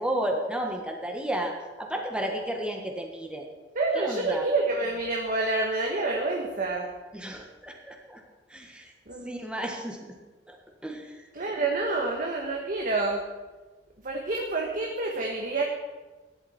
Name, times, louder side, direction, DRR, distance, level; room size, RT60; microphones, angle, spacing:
voice 1, 0.0-3.5 3.9-4.5 7.1-8.2 8.5-8.9 9.2-10.0 10.5-10.6 10.8-11.2, right 1 dB, 5° right, 2 dB, 1.5 m, -32 dB
voice 2, 3.7-6.9 9.1-9.3 11.3-13.2 14.0-15.6, right 3 dB, 50° right, 0 dB, 1.4 m, -28 dB
14.5 x 11.0 x 4.4 m, 1.2 s
head